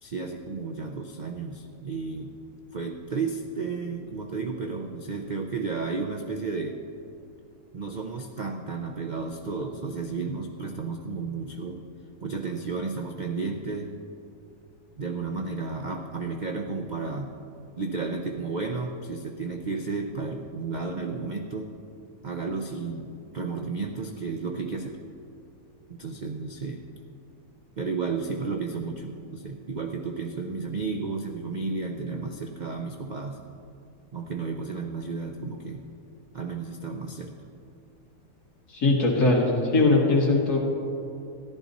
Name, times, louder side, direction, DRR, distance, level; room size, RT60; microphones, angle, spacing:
voice 1, 0.0-2.3 2.7-6.8 7.7-11.8 12.2-13.9 15.0-17.3 17.8-21.7 22.2-25.0 25.9-26.8 27.8-33.4 34.1-35.8 36.3-37.3, right 4 dB, 80° right, 3 dB, 0.4 m, -32 dB
voice 2, 38.7-40.6, left 3 dB, 75° left, -2 dB, 2.5 m, -21 dB
14.0 x 11.5 x 4.1 m, 2.6 s
omnidirectional pair, 1.7 m